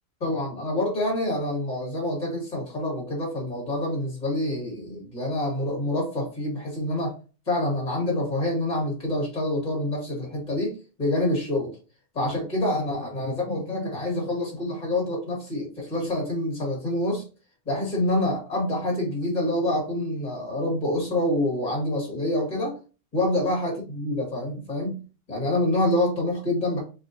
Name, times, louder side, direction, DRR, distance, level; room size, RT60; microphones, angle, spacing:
voice 1, 0.2-7.1 7.5-11.8 12.1-17.2 17.7-22.7 23.1-25.0 25.3-26.8, left 1 dB, 35° left, -1 dB, 2.0 m, -27 dB
4.5 x 3.2 x 2.8 m, 0.34 s
omnidirectional pair, 1.2 m